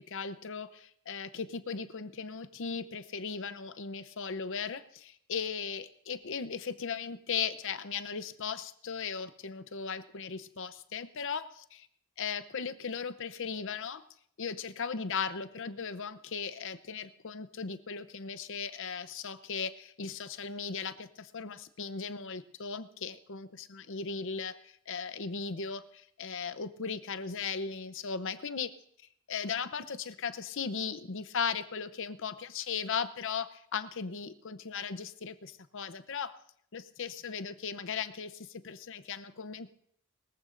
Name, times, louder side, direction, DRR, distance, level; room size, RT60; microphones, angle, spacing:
voice 1, 0.0-11.6 12.2-14.1 14.4-28.7 29.3-36.4 36.7-39.7, left 6 dB, 60° left, 12 dB, 0.7 m, -37 dB
21.5 x 14.5 x 2.6 m, 0.65 s
head